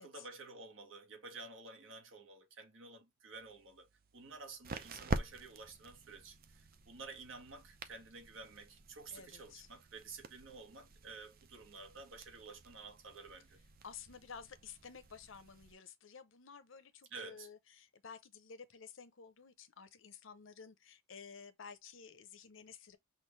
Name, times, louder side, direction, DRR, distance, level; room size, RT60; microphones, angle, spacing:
voice 1, 0.0-13.6 17.1-17.5, right 3 dB, 70° right, 1.8 m, -51 dB
sound 1, 3.3-15.7, right 3 dB, 45° right, 0.6 m, -47 dB
voice 2, 9.1-9.7 13.8-23.0, left 6 dB, 65° left, 0.8 m, -53 dB
5.9 x 2.6 x 3.1 m
head